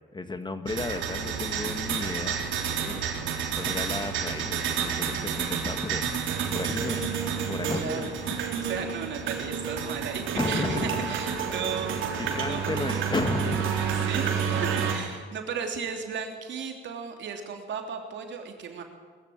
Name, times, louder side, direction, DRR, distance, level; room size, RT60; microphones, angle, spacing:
voice 1, 0.1-2.4 2.8-3.0 3.5-7.1 7.5-8.3 10.3-11.2 12.2-13.7, left 3 dB, 20° left, 9 dB, 1.5 m, -33 dB
sound 1, 0.7-14.9, right 7 dB, 85° right, 3.5 m, -30 dB
voice 2, 5.0-5.4 7.7-8.1 8.6-12.0 12.4-12.9 14.1-14.4 14.9-18.8, right 6 dB, 70° right, 3 dB, 3.2 m, -35 dB
21.0 x 14.0 x 8.8 m, 1.5 s
cardioid pair, 90°, 20 cm